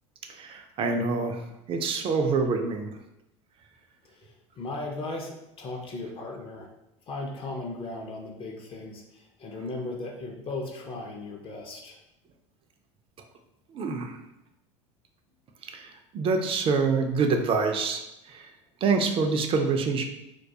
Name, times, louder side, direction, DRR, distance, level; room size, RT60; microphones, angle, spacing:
voice 1, 0.3-2.9 13.7-14.2 15.6-18.0 18.3-18.5 18.8-20.1, right 4 dB, 35° right, 5 dB, 0.3 m, -26 dB
voice 2, 4.1-6.7 7.1-12.0, left 2 dB, 35° left, 1 dB, 0.5 m, -37 dB
2.2 x 2.2 x 2.7 m, 0.87 s
hypercardioid pair, 85°, 16 cm